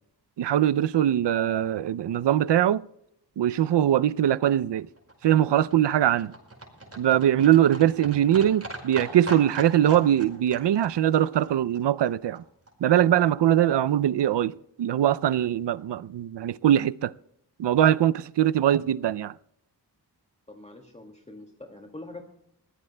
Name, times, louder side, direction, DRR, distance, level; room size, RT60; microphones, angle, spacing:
voice 1, 0.4-2.8 3.4-4.9 5.2-6.3 7.0-12.4 12.8-14.5 14.8-17.1 17.6-19.3, right 11 dB, 85° right, 0.5 m, -22 dB
Livestock farm animals working animals, 4.6-12.7 13.0-13.1 13.3-13.4 13.6-13.7 13.9-14.0 14.2-14.3 14.5-14.6 14.8-14.9 15.2-15.3, right 2 dB, 35° right, 5.1 m, -41 dB
voice 2, 20.5-22.2, left 2 dB, 15° left, 2.2 m, -44 dB
22.5 x 16.5 x 2.2 m
cardioid pair, 55°, 41 cm